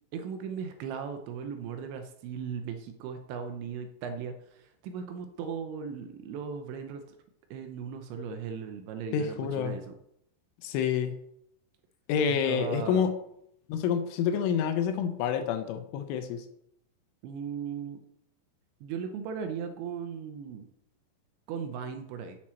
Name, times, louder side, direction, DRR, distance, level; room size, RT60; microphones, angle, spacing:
voice 1, 0.1-7.0 7.5-9.9 12.4-13.1 17.2-18.0 18.8-20.7 21.5-22.4, right 6 dB, 80° right, 6 dB, 2.7 m, -37 dB
voice 2, 9.1-9.8 10.6-11.1 12.1-13.2 13.7-16.5, left 7 dB, 80° left, 8 dB, 3.1 m, -28 dB
9.0 x 7.3 x 4.4 m, 0.75 s
omnidirectional pair, 5.8 m